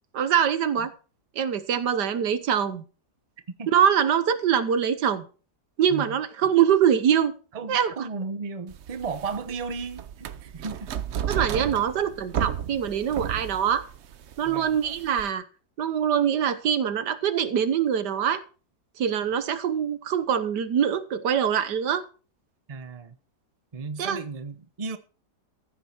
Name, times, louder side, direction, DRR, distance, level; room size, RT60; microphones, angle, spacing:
voice 1, 0.1-0.9 1.3-2.8 3.7-5.2 5.8-7.3 7.7-8.1 11.3-13.8 14.4-15.4 15.8-18.4 19.0-22.0 24.0-24.2, right 8 dB, 80° right, 1.6 m, -24 dB
voice 2, 7.5-10.9 14.4-14.8 22.7-23.1 23.7-25.0, right 4 dB, 25° right, 0.9 m, -35 dB
sound 1, 8.7-15.3, right 9 dB, 55° right, 0.8 m, -33 dB
15.0 x 9.0 x 4.5 m
omnidirectional pair, 1.8 m